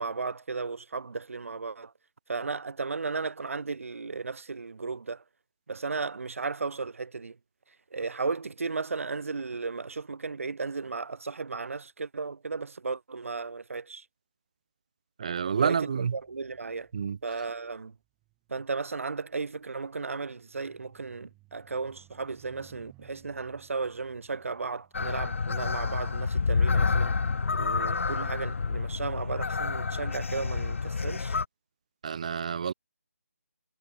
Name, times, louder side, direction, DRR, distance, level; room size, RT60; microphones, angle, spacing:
voice 1, 0.0-1.9 2.3-5.2 5.7-7.4 7.7-14.1 15.6-16.9 17.2-18.0 18.5-27.2 27.5-31.4, right 4 dB, 60° right, 1.9 m, -35 dB
voice 2, 15.2-16.1 16.9-17.2 32.0-32.7, right 6 dB, 25° right, 0.4 m, -28 dB
sound 1, 16.0-27.6 28.4-28.7, right 22 dB, 10° right, 7.2 m, -61 dB
sound 2, 24.9-31.4, left 4 dB, 55° left, 1.3 m, -28 dB
figure-of-eight pair, 165°, 8 cm